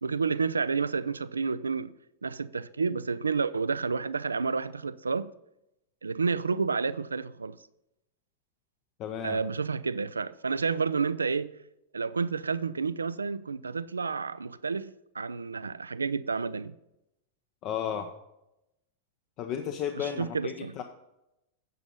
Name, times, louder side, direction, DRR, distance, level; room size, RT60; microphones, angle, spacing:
voice 1, 0.0-1.9 2.2-5.3 6.0-7.6 9.2-11.5 11.9-16.8 20.0-20.7, right 5 dB, 75° right, 0.4 m, -30 dB
voice 2, 9.0-9.4 17.6-18.1 19.4-20.8, left 8 dB, 40° left, 0.7 m, -33 dB
9.3 x 7.2 x 5.4 m
figure-of-eight pair, 90°, 0 cm